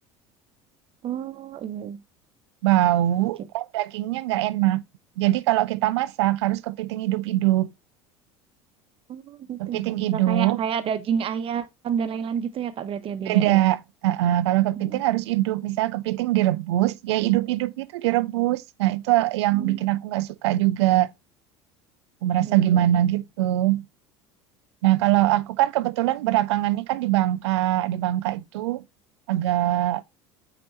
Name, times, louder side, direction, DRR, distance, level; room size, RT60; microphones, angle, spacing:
voice 1, 1.0-2.0 3.2-3.3 9.1-13.7 14.8-15.0 19.5-19.8 22.3-23.0, right 7 dB, 35° right, 1.0 m, -30 dB
voice 2, 2.6-4.8 5.2-7.7 9.6-10.6 13.3-21.1 22.2-23.8 24.8-28.8 29.3-30.0, right 14 dB, 65° right, 0.5 m, -22 dB
8.4 x 3.0 x 4.4 m
figure-of-eight pair, 70°, 15 cm